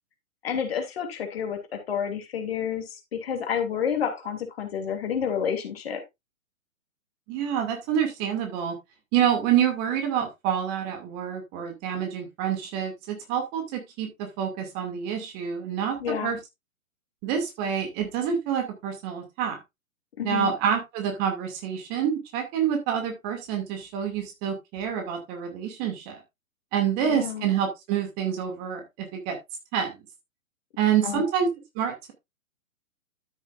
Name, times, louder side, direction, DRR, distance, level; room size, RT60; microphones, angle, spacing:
voice 1, 0.4-6.0 16.0-16.3 20.2-20.5 27.0-27.5 31.0-31.3, left 7 dB, 45° left, 5 dB, 2.9 m, -29 dB
voice 2, 7.3-8.7 9.1-16.4 17.2-19.6 20.2-26.2 26.7-29.4 29.7-30.0 30.8-31.5 31.8-32.1, right 8 dB, 20° right, 4 dB, 2.3 m, -27 dB
13.0 x 7.1 x 2.5 m, 0.21 s
figure-of-eight pair, 125°, 41 cm